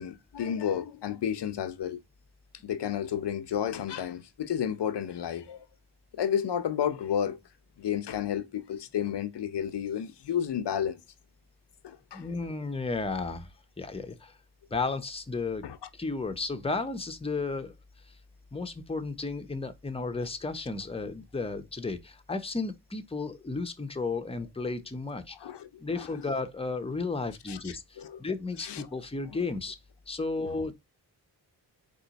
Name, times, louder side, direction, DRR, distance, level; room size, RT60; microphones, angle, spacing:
voice 1, 0.0-2.0 2.6-5.7 6.2-7.4 7.8-11.0 11.8-12.3 15.6-15.8 25.4-26.3 27.5-28.2 28.6-28.9, left 9 dB, 75° left, 0.7 m, -32 dB
voice 2, 12.1-13.5 13.8-14.3 14.7-15.6 15.9-17.7 18.5-25.4 25.8-29.8 30.1-30.7, left 3 dB, 15° left, 0.8 m, -33 dB
4.4 x 3.0 x 3.9 m
cardioid pair, 75°, 41 cm